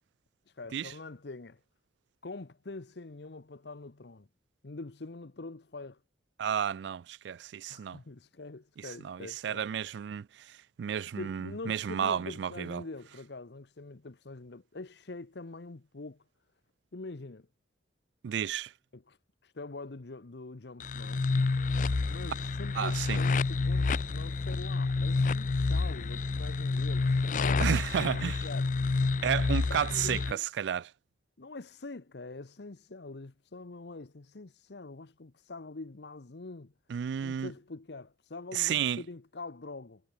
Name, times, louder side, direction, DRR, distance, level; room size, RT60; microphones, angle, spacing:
voice 1, 0.5-1.6 2.2-4.3 4.6-6.0 7.7-9.6 11.2-16.2 16.9-17.5 18.9-21.2 22.0-28.7 29.7-30.4 31.4-36.7 37.2-40.0, left 3 dB, 65° left, 0.9 m, -44 dB
voice 2, 6.4-8.0 8.8-12.8 18.2-18.7 22.8-23.2 27.6-28.4 29.2-30.9 36.9-37.5 38.5-39.0, right 8 dB, 70° right, 0.3 m, -32 dB
sound 1, 20.8-30.3, left 3 dB, 45° left, 0.4 m, -29 dB
head